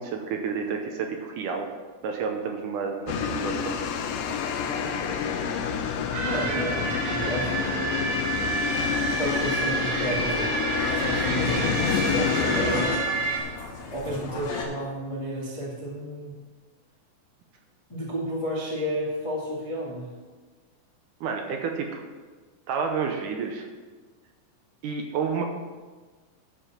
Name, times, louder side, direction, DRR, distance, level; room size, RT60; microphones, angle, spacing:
voice 1, 0.0-1.7 2.0-3.8 21.2-22.0 22.7-23.7 24.8-25.4, right 5 dB, 75° right, 3 dB, 2.1 m, -30 dB
sound 1, 3.1-13.0, left 6 dB, 85° left, 1.5 m, -28 dB
sound 2, 6.1-13.4, right 3 dB, 55° right, 1.6 m, -29 dB
voice 2, 6.2-7.5 7.8-7.9 9.2-10.6 11.0-13.1 13.9-16.3 17.9-20.1, right 1 dB, 30° left, -5 dB, 0.6 m, -32 dB
sound 3, 8.7-14.6, left 4 dB, 55° left, 2.6 m, -36 dB
10.0 x 6.9 x 5.8 m, 1.4 s
omnidirectional pair, 4.2 m